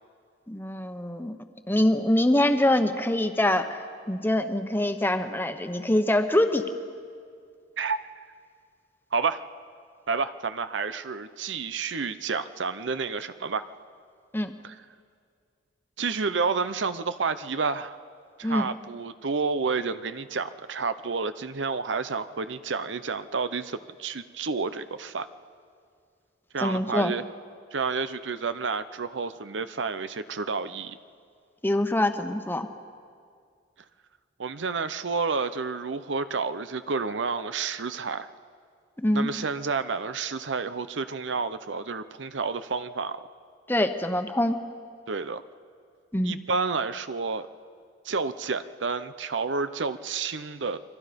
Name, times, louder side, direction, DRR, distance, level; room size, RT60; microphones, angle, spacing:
voice 1, 0.5-1.4 1.7-6.7 14.3-14.5 18.4-18.7 26.6-27.1 31.6-32.7 39.0-39.3 43.7-44.6 46.1-46.4, left 1 dB, 10° left, 7 dB, 1.1 m, -24 dB
voice 2, 9.1-9.4 10.1-13.6 14.6-14.7 16.0-18.0 18.4-25.3 26.5-27.2 27.7-31.0 34.4-38.3 39.1-43.2 45.1-45.4 46.2-47.5 48.0-50.8, right 4 dB, 90° right, 12 dB, 0.8 m, -30 dB
30.0 x 23.5 x 5.3 m, 2.2 s
head